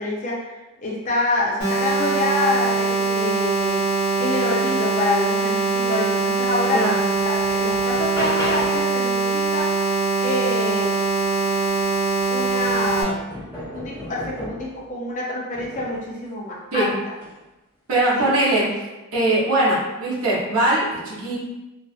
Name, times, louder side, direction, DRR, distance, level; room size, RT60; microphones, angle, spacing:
voice 1, 0.0-3.9 4.2-6.8 7.3-9.7 10.2-10.9 12.3-13.3 13.7-16.9 18.2-18.3, left 2 dB, 35° left, -3 dB, 0.5 m, -26 dB
sound 1, 1.6-13.0, right 3 dB, 65° left, 0.9 m, -22 dB
sound 2, 6.6-6.7 7.1-9.0 11.3-11.4 11.8-14.8 15.5-16.1 17.1-17.4, left 1 dB, 10° right, 0.9 m, -35 dB
voice 2, 17.9-18.7 19.1-21.4, right 1 dB, 70° right, -6 dB, 0.8 m, -21 dB
2.6 x 2.3 x 2.4 m, 1.1 s
head